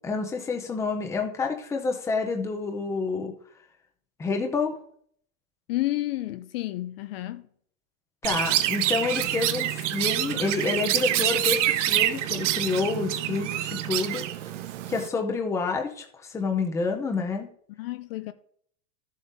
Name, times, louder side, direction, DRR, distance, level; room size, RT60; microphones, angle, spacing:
voice 1, 0.0-3.3 4.2-4.7 8.2-14.2 14.9-17.5, left 4 dB, 5° left, 0.6 m, -28 dB
voice 2, 5.7-7.5 17.7-18.3, left 16 dB, 50° left, 0.5 m, -31 dB
Chirp tweet, 8.2-15.1, right 13 dB, 65° right, 0.8 m, -26 dB
13.0 x 7.4 x 2.7 m
supercardioid pair, 150°, 40 cm